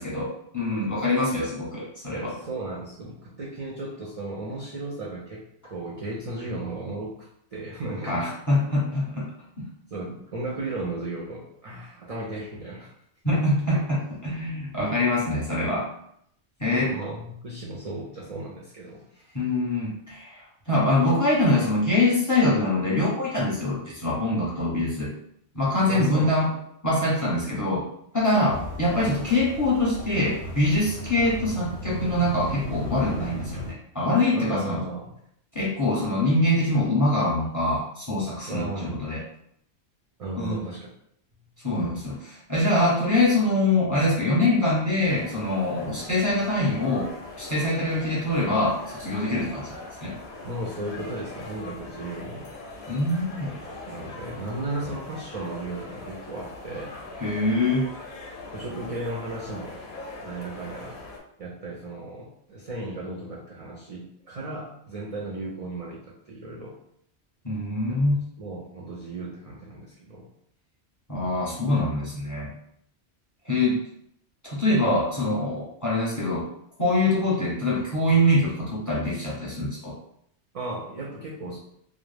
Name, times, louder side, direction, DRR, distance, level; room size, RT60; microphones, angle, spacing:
voice 1, 0.0-2.4 8.1-9.7 13.2-15.9 16.6-16.9 19.3-25.1 25.5-26.5 26.8-27.9 28.1-34.8 35.5-39.2 40.4-40.6 41.6-47.1 47.4-50.1 52.9-53.5 57.2-57.9 67.4-68.2 71.1-72.5 73.4-73.8 74.4-76.5 76.8-80.0, left 1 dB, 20° left, -7 dB, 0.7 m, -24 dB
voice 2, 2.1-8.3 9.9-12.9 13.3-13.4 13.7-13.8 16.7-19.3 25.9-26.3 28.3-28.5 34.3-35.1 38.5-39.1 40.2-40.9 50.4-52.5 53.4-56.9 58.5-59.8 60.1-61.0 61.4-66.0 66.3-66.7 67.9-68.0 68.4-70.3 80.5-81.6, right 2 dB, 55° right, -5 dB, 0.4 m, -35 dB
sound 1, 28.5-33.7, left 1 dB, 90° left, 0.9 m, -35 dB
sound 2, 45.0-61.2, left 3 dB, 60° left, 0.6 m, -41 dB
2.3 x 2.0 x 3.1 m, 0.71 s
omnidirectional pair, 1.1 m